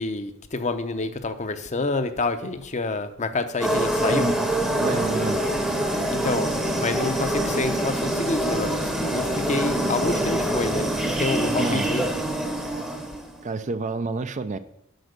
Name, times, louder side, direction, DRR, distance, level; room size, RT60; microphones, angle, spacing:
voice 1, 0.0-4.3 6.1-10.9 11.2-12.0, left 3 dB, 35° left, 0.7 m, -28 dB
sound 1, 3.6-13.4, right 1 dB, 5° right, 0.8 m, -25 dB
voice 2, 4.8-5.5 11.6-11.9 13.4-14.6, right 3 dB, 35° right, 0.4 m, -28 dB
7.9 x 5.7 x 6.6 m
head